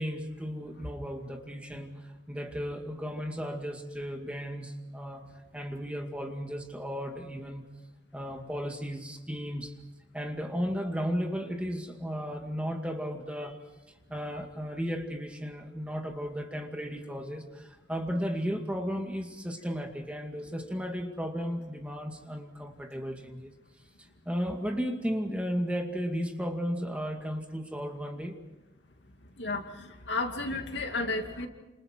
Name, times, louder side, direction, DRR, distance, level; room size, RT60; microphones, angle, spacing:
voice 1, 0.0-5.3 5.5-7.7 8.1-9.8 10.1-13.6 14.1-23.5 24.3-28.4, equal, 5° right, 3 dB, 2.2 m, -34 dB
voice 2, 29.4-31.5, left 3 dB, 70° left, 4 dB, 2.6 m, -33 dB
29.5 x 28.0 x 4.6 m, 1.1 s
head